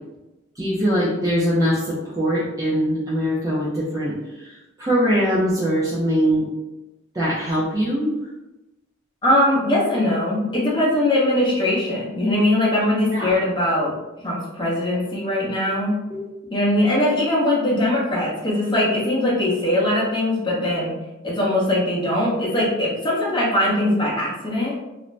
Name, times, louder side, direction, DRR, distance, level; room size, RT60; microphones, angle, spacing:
voice 1, 0.6-6.5 7.1-8.1 13.1-13.4 16.1-16.2, equal, 15° right, -8 dB, 0.4 m, -22 dB
voice 2, 9.2-13.9 14.2-15.9 16.5-20.9 21.2-24.7, left 1 dB, 20° left, -5 dB, 0.8 m, -21 dB
2.5 x 2.1 x 3.1 m, 1.0 s
head